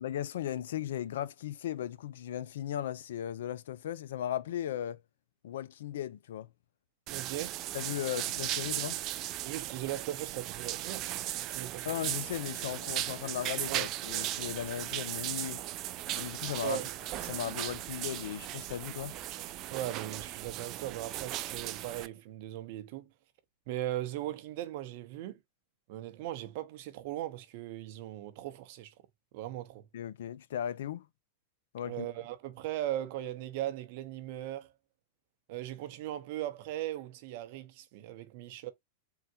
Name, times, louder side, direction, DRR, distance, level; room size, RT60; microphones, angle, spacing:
voice 1, 0.0-5.0 5.4-6.5 7.7-9.0 11.8-15.6 16.2-16.8 17.3-19.1 29.9-31.1 31.7-32.1, left 11 dB, 75° left, 0.4 m, -37 dB
sound 1, 7.1-22.1, right 14 dB, 45° right, 0.3 m, -37 dB
voice 2, 7.1-7.7 9.4-12.0 13.7-13.9 16.6-16.9 19.7-23.1 23.7-25.4 25.9-28.9 29.3-29.9 31.8-34.7 35.5-38.7, right 13 dB, 60° right, 0.7 m, -38 dB
3.8 x 2.1 x 2.7 m
hypercardioid pair, 115°, 0 cm